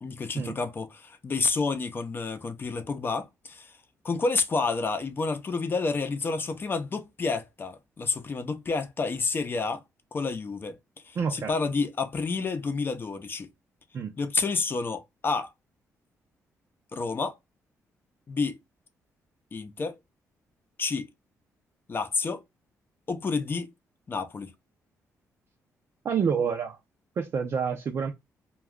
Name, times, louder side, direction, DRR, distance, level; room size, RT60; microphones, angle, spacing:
voice 1, 0.0-3.7 4.0-9.8 10.1-10.8 11.0-13.5 14.2-15.5 16.9-17.4 18.3-18.5 19.5-19.9 20.8-21.1 21.9-22.4 23.1-23.7 24.1-24.5, left 4 dB, 35° left, 0.6 m, -29 dB
voice 2, 11.2-11.5 13.9-14.1 26.0-26.8 27.2-28.1, right 6 dB, 50° right, 0.5 m, -28 dB
2.3 x 2.3 x 3.5 m
cardioid pair, 90°, 6 cm